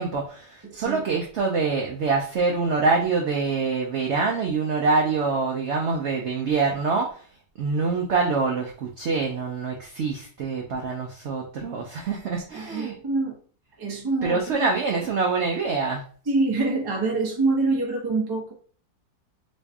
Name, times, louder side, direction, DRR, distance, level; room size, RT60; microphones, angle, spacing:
voice 1, 0.0-7.1 7.6-12.9 14.2-16.0, right 4 dB, 80° right, 0.6 m, -25 dB
voice 2, 0.6-1.0 12.5-13.4 13.8-14.7 16.3-18.5, right 3 dB, 30° right, 0.4 m, -25 dB
3.1 x 2.7 x 3.4 m
omnidirectional pair, 1.9 m